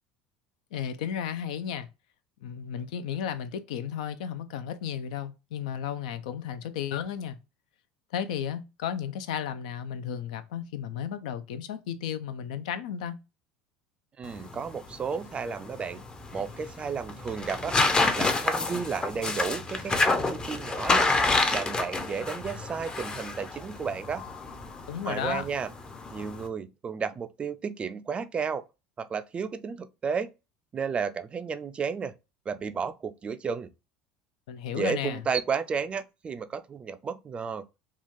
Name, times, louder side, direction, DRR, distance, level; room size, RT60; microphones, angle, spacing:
voice 1, 0.7-1.9 2.4-7.4 8.1-13.2 24.9-25.5 34.5-35.2, left 8 dB, 80° left, 0.4 m, -33 dB
sound 1, 14.2-26.5, left 3 dB, 20° left, 0.5 m, -29 dB
voice 2, 14.2-16.0 16.3-17.8 18.2-21.1 21.5-24.3 25.0-25.7 26.1-28.6 29.0-30.3 30.7-32.1 32.5-33.7 34.7-37.7, right 6 dB, 30° right, 0.3 m, -32 dB
3.0 x 2.4 x 2.5 m
supercardioid pair, 95°, 4 cm